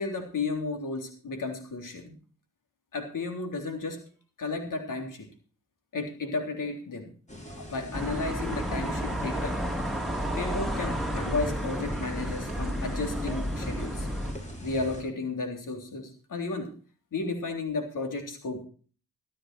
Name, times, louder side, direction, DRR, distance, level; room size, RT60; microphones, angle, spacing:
voice 1, 0.0-2.2 2.9-4.0 4.4-5.3 5.9-7.1 7.6-9.6 10.4-14.1 14.6-16.7 17.1-18.6, left 3 dB, 70° left, 4 dB, 3.6 m, -33 dB
sound 1, 7.3-15.0, equal, 20° left, 5.8 m, -42 dB
sound 2, 7.9-14.3, equal, ahead, 3.4 m, -31 dB
13.5 x 11.5 x 4.5 m, 0.39 s
supercardioid pair, 45°, 33 cm